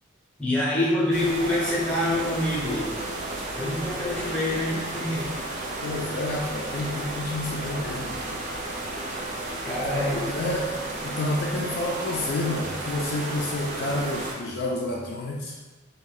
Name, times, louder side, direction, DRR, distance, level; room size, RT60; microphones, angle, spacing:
voice 1, 0.4-3.0 3.5-5.4 9.6-10.4, left 1 dB, 5° left, -6 dB, 0.6 m, -26 dB
sound 1, 1.1-14.3, right 2 dB, 35° right, 0.4 m, -33 dB
voice 2, 3.8-4.2 5.8-8.2 9.6-15.6, left 1 dB, 50° left, -2 dB, 0.3 m, -30 dB
2.6 x 2.2 x 3.9 m, 1.2 s
head